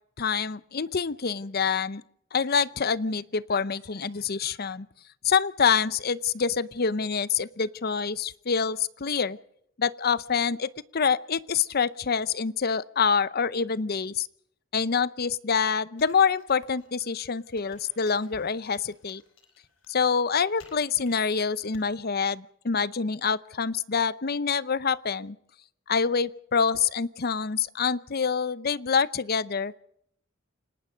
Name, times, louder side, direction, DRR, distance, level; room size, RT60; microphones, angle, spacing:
voice 1, 0.2-2.0 2.3-4.9 5.2-9.4 9.8-14.3 14.7-19.2 19.9-25.4 25.9-29.7, left 6 dB, 50° left, 17 dB, 0.7 m, -26 dB
sound 1, 16.0-21.9, left 4 dB, 75° left, 4.4 m, -56 dB
28.5 x 19.0 x 5.2 m, 0.72 s
head